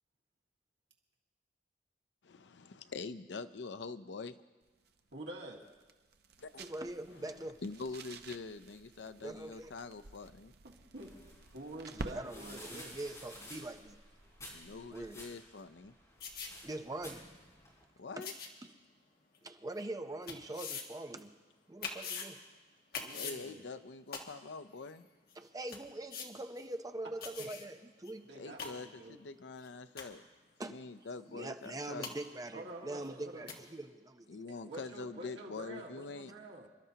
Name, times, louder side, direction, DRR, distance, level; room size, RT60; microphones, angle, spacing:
voice 1, 2.2-4.3 6.4-6.7 7.6-10.5 14.5-15.9 18.0-18.3 23.1-25.1 28.4-30.2 30.7-32.1 34.3-36.3, left 4 dB, 85° left, 12 dB, 0.6 m, -45 dB
sound 1, 4.6-15.3, right 2 dB, 65° right, 0.8 m, -52 dB
voice 2, 5.1-5.6 10.6-11.1 11.5-12.9 23.0-23.6 27.4-27.5 28.2-29.2 32.5-33.5 34.5-36.7, right 1 dB, 80° right, -2 dB, 1.9 m, -48 dB
voice 3, 6.6-7.6 9.2-9.7 11.9-14.0 14.9-15.2 16.6-17.3 18.2-18.3 18.6-18.7 19.4-21.3 21.7-22.4 25.4-28.2 30.6-30.8 31.3-34.4, right 2 dB, 20° right, 7 dB, 0.7 m, -43 dB
sound 2, 11.0-17.8, left 1 dB, 20° left, 4.5 m, -53 dB
sound 3, 16.2-16.5 17.1-17.2 18.2-18.5 19.3-19.4 20.3-20.8 21.2-21.3 21.8-22.3 22.9-23.4 24.1-24.2 24.9-25.0 25.3-25.4 25.7-25.8 26.1-26.3 26.6-26.7 27.2-27.7 28.1-28.2 28.4-28.7 29.6-29.7 30.0-30.2 31.6-31.7 32.0-32.1 33.0-33.1 33.5-33.6, left 5 dB, 60° left, 1.5 m, -42 dB
27.0 x 12.0 x 2.9 m, 1.3 s
head